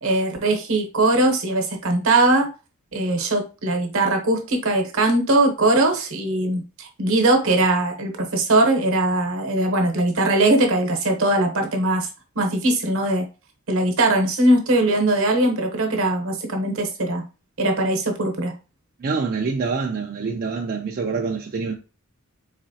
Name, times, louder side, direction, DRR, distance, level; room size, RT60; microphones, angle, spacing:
voice 1, 0.0-2.5 2.9-12.1 12.4-13.2 13.7-17.2 17.6-18.5, right 2 dB, 65° right, 1.0 m, -20 dB
voice 2, 19.0-21.7, right 4 dB, 40° right, 0.4 m, -26 dB
4.1 x 3.0 x 2.7 m
head